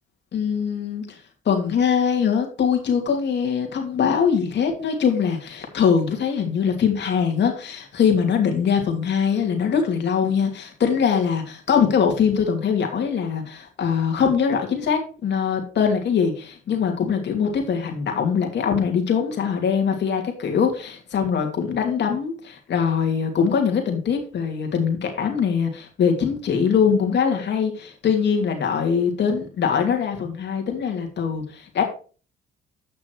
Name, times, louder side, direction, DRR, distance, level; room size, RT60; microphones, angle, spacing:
voice 1, 0.3-1.2 1.4-31.8, left 7 dB, 60° left, 3 dB, 2.8 m, -22 dB
8.8 x 6.1 x 4.6 m, 0.38 s
cardioid pair, 90°, 20 cm